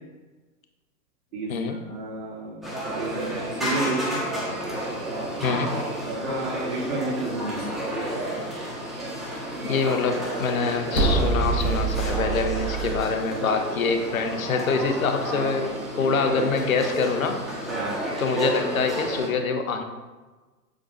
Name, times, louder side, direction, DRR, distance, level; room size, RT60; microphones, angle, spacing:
voice 1, 1.3-2.7 2.9-4.3 5.0-5.7 6.0-7.8 17.7-18.0, right 2 dB, 40° right, -3 dB, 1.7 m, -32 dB
sound 1, 2.6-19.3, right 1 dB, ahead, 1.5 m, -31 dB
voice 2, 5.4-5.9 9.6-17.4 18.2-19.8, left 5 dB, 55° left, 6 dB, 1.0 m, -25 dB
sound 2, 10.9-13.0, right 3 dB, 90° left, 1.5 m, -25 dB
8.1 x 7.4 x 2.6 m, 1.3 s
figure-of-eight pair, 110°, 49 cm